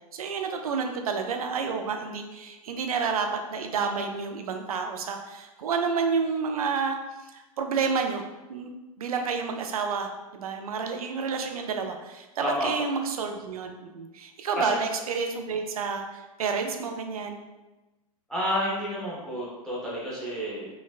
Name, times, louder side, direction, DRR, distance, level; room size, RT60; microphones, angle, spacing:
voice 1, 0.1-7.0 7.3-8.2 8.5-8.7 9.0-17.4, right 5 dB, 75° right, 4 dB, 0.4 m, -30 dB
voice 2, 18.3-20.7, equal, 5° left, -8 dB, 1.1 m, -30 dB
3.1 x 2.0 x 2.4 m, 1.1 s
hypercardioid pair, 105°, 19 cm